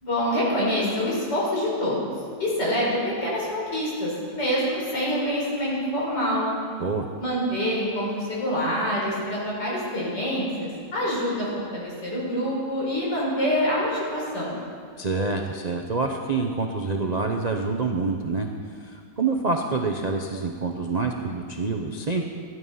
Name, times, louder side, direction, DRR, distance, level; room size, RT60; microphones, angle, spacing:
voice 1, 0.0-2.0 2.4-6.5 7.2-11.5 11.7-14.6, equal, 70° left, -5 dB, 5.2 m, -26 dB
voice 2, 15.0-18.5 18.8-22.2, right 3 dB, 50° right, 3 dB, 0.5 m, -27 dB
16.0 x 11.0 x 5.6 m, 2.2 s
omnidirectional pair, 1.9 m